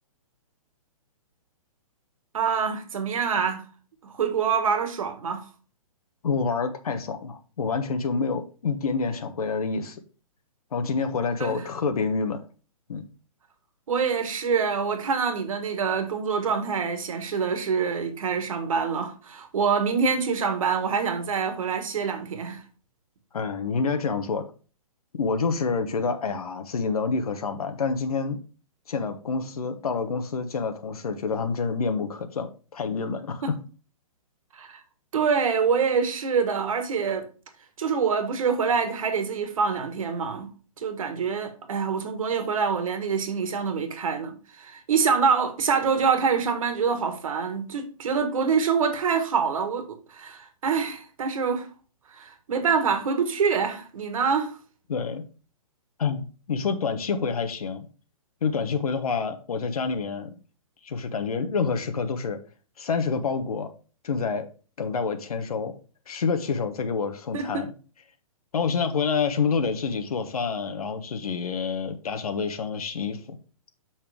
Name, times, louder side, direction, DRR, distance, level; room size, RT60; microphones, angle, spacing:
voice 1, 2.3-3.6 4.0-5.5 11.4-11.5 13.9-22.6 33.4-33.5 34.5-34.8 35.1-37.3 37.8-40.5 40.8-51.7 52.1-54.6 67.3-67.6, right 6 dB, 65° right, 1.6 m, -25 dB
voice 2, 6.2-10.0 10.7-12.4 12.9-13.0 23.3-24.4 25.2-28.4 28.9-33.4 54.9-55.2 56.0-57.9 58.4-60.3 60.8-62.4 62.8-63.7 64.0-64.5 64.8-65.7 66.1-67.7 68.5-73.4, left 5 dB, 90° left, 1.1 m, -27 dB
6.7 x 5.7 x 3.5 m
hypercardioid pair, 160°, 18 cm